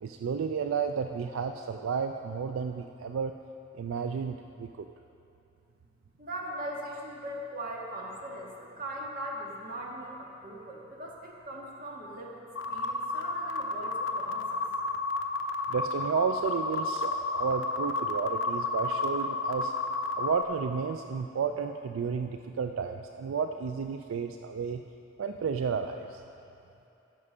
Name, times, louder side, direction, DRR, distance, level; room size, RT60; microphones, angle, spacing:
voice 1, 0.0-3.3 3.7-4.9 15.7-19.7 20.2-24.8 25.2-26.2, right 6 dB, 80° right, 6 dB, 0.4 m, -32 dB
voice 2, 6.2-12.3 12.7-14.6, right 1 dB, 45° right, -2 dB, 1.6 m, -40 dB
sound 1, 12.6-20.4, left 2 dB, 75° left, 0.6 m, -32 dB
14.5 x 6.1 x 5.5 m, 2.8 s
head